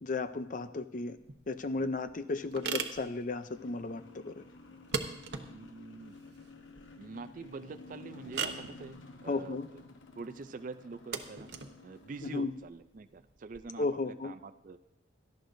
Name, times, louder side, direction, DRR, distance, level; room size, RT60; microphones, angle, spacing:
voice 1, 0.0-1.2 1.5-4.4 9.3-9.7 12.2-12.5 13.8-14.3, left 3 dB, 45° left, 11 dB, 0.5 m, -34 dB
sound 1, 1.2-13.6, right 5 dB, 60° right, 0.9 m, -42 dB
sound 2, 3.5-12.4, left 2 dB, 85° left, 1.0 m, -52 dB
voice 2, 5.5-6.1 7.0-9.0 9.2-9.8 10.2-11.5 11.8-14.8, right 4 dB, 45° right, 11 dB, 0.4 m, -45 dB
17.5 x 13.0 x 2.6 m, 0.87 s
head